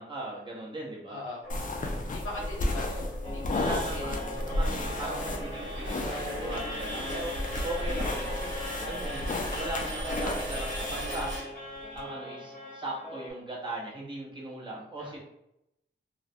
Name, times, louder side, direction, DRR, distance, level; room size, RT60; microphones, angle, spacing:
voice 1, 0.0-1.2 3.5-9.3 9.6-11.5 11.9-15.2, right 1 dB, 25° right, -5 dB, 0.8 m, -38 dB
voice 2, 1.1-1.4 2.1-3.1 3.5-4.2 5.0-5.3 15.0-15.2, left 1 dB, 85° left, -4 dB, 0.9 m, -40 dB
sound 1, 1.4-12.0, right 1 dB, 65° right, 1.0 m, -42 dB
sound 2, 1.5-11.4, left 1 dB, 40° left, 0.4 m, -33 dB
sound 3, 3.2-13.3, left 1 dB, 10° left, 1.0 m, -39 dB
2.3 x 2.0 x 2.6 m, 0.81 s
wide cardioid pair, 70°, 21 cm